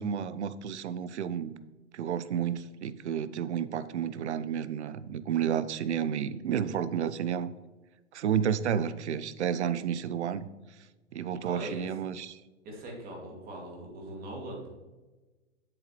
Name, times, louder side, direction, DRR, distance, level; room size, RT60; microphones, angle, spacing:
voice 1, 0.0-1.5 1.9-7.5 8.1-10.5 11.1-12.4, right 8 dB, 65° right, 15 dB, 0.6 m, -31 dB
voice 2, 11.4-11.9 12.6-14.7, right 1 dB, 25° right, 0 dB, 2.3 m, -41 dB
8.1 x 7.2 x 3.1 m, 1.2 s
hypercardioid pair, 120°, 36 cm